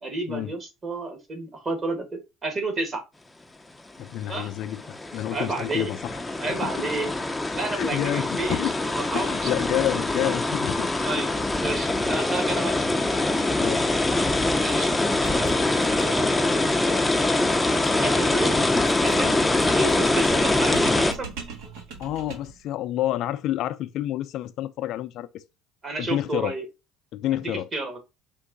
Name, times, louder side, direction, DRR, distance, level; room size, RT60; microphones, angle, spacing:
voice 1, 0.0-3.0 4.3-4.5 5.3-5.9 6.4-7.1 7.5-9.5 11.0-11.3 11.6-12.8 14.5-16.9 18.0-18.6 19.0-21.3 25.8-26.7 27.3-28.0, right 2 dB, 35° right, 1.7 m, -31 dB
voice 2, 4.0-6.2 6.6-6.7 7.7-8.7 9.1-10.9 13.6-13.9 22.0-25.4 26.0-26.5 27.1-27.7, left 13 dB, 60° left, 0.4 m, -29 dB
sound 1, 4.3-21.1, left 2 dB, 10° left, 0.5 m, -24 dB
sound 2, 13.7-13.8 14.1-14.2 14.5-22.6, right 5 dB, 80° right, 1.3 m, -42 dB
4.5 x 2.5 x 3.9 m
supercardioid pair, 85°, 0 cm